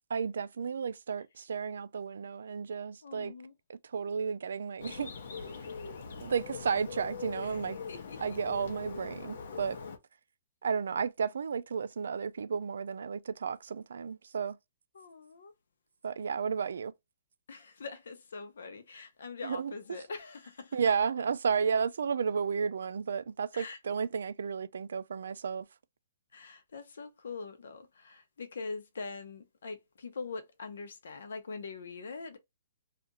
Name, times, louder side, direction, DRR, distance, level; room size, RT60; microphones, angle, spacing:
voice 1, 0.1-3.3 3.7-5.1 6.2-7.8 8.2-9.8 10.6-14.6 16.0-16.9 19.4-20.0 20.7-25.7, right 6 dB, 85° right, 0.3 m, -33 dB
voice 2, 3.0-3.5 7.5-7.6 7.9-8.4 14.9-15.5 17.5-20.8 23.5-23.8 26.3-32.4, left 4 dB, 80° left, 0.8 m, -43 dB
Bird, 4.8-10.0, left 5 dB, 55° left, 0.7 m, -42 dB
2.8 x 2.5 x 3.8 m
hypercardioid pair, 175°, 0 cm